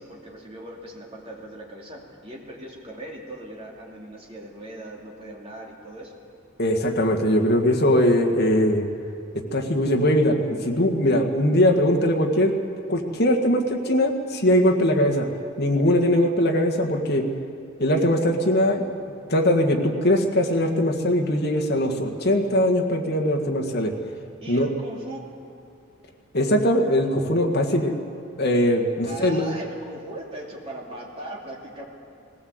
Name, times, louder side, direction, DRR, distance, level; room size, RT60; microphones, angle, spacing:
voice 1, 0.0-6.1 24.4-25.3 29.0-31.8, right 1 dB, 25° right, -2 dB, 2.8 m, -39 dB
voice 2, 6.6-8.9 9.5-12.5 12.9-15.3 15.6-17.2 17.8-18.9 19.3-23.9 24.5-24.7 26.3-27.9 28.4-29.4, equal, 50° left, 1 dB, 1.7 m, -21 dB
19.5 x 17.0 x 8.0 m, 2.5 s
head